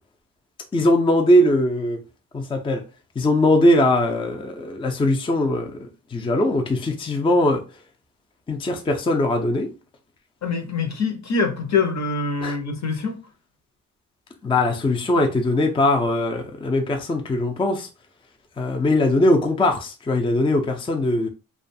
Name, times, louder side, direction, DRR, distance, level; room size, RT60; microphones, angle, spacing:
voice 1, 0.7-2.0 2.3-2.8 3.2-5.8 6.1-7.6 8.5-9.7 12.4-12.6 14.4-17.9 18.6-21.3, left 1 dB, 15° left, 0.4 m, -20 dB
voice 2, 10.4-13.2, left 4 dB, 50° left, 0.7 m, -24 dB
2.4 x 2.3 x 2.6 m
cardioid pair, 80°, 35 cm